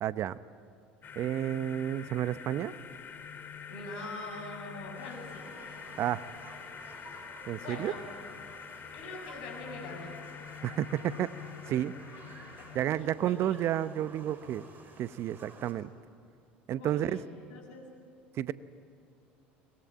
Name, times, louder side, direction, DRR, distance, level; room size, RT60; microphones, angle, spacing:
voice 1, 0.0-0.4 1.2-2.7 6.0-6.2 7.5-7.9 10.6-11.9 12.7-14.6 15.0-15.9 16.7-17.2 18.4-18.5, right 11 dB, 50° right, 16 dB, 0.8 m, -31 dB
sound 1, 1.0-13.0, left 8 dB, 40° left, 2.1 m, -46 dB
voice 2, 3.7-5.5 7.6-8.0 8.9-10.2 12.1-12.3 12.6-13.6 16.7-17.9, left 2 dB, 70° left, 2 dB, 6.8 m, -44 dB
sound 2, 4.9-15.7, right 3 dB, 35° right, 5.4 m, -52 dB
23.0 x 21.5 x 9.1 m, 2.6 s
hypercardioid pair, 70°, 6 cm